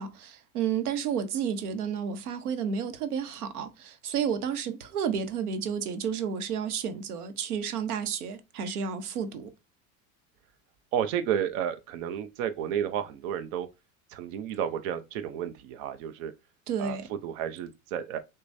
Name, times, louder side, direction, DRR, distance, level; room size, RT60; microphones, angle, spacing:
voice 1, 0.0-9.5 16.7-17.1, right 7 dB, 85° right, 0.9 m, -31 dB
voice 2, 10.9-13.7 14.1-16.3 16.8-18.2, right 9 dB, 60° right, 0.7 m, -31 dB
6.3 x 2.3 x 2.6 m
hypercardioid pair, 105°, 43 cm